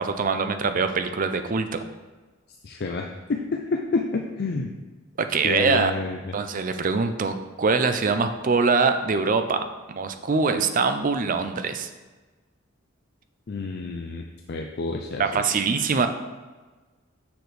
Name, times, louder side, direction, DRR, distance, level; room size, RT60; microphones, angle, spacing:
voice 1, 0.0-1.8 5.2-5.9 6.3-9.6 9.9-11.9 15.2-16.1, right 4 dB, 40° right, 8 dB, 0.5 m, -23 dB
voice 2, 2.6-4.7 5.4-6.4 13.5-15.6, left 3 dB, 55° left, 2 dB, 0.5 m, -29 dB
6.9 x 6.0 x 3.3 m, 1.3 s
head